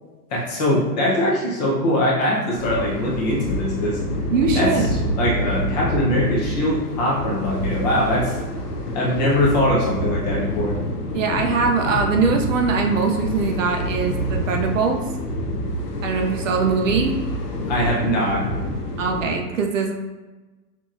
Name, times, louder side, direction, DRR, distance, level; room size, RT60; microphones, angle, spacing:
voice 1, 0.3-4.0 4.5-4.7 5.2-8.4 8.9-10.8 17.7-18.4, left 1 dB, 25° left, -5 dB, 0.8 m, -22 dB
sound 1, 2.5-19.4, equal, 65° left, 1.0 m, -27 dB
voice 2, 4.3-4.9 11.1-15.0 16.0-17.2 19.0-19.9, right 5 dB, 50° right, 2 dB, 0.6 m, -22 dB
5.6 x 3.0 x 2.5 m, 1.2 s
hypercardioid pair, 170°, 49 cm